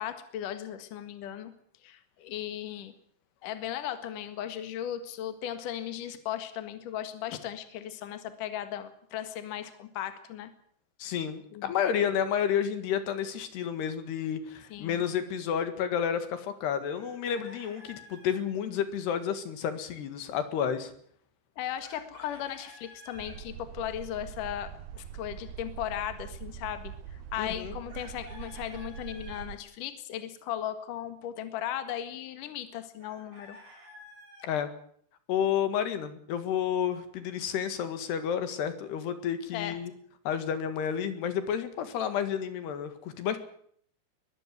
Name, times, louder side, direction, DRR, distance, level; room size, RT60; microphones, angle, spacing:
voice 1, 0.0-1.5 1.8-2.9 3.4-10.5 11.5-11.7 14.7-15.0 21.6-33.6 39.5-39.8, left 11 dB, 60° left, 9 dB, 3.0 m, -37 dB
voice 2, 11.0-20.9 27.4-27.8 34.4-34.7 35.3-39.9 40.3-43.4, left 8 dB, 75° left, 10 dB, 3.9 m, -30 dB
Chicken rooster, 16.9-18.4 21.8-23.4 27.9-29.4 33.0-34.5, left 1 dB, 50° right, 9.5 m, -51 dB
sound 1, 23.2-29.6, right 9 dB, 70° right, 2.7 m, -43 dB
22.0 x 14.5 x 9.5 m, 0.63 s
omnidirectional pair, 4.8 m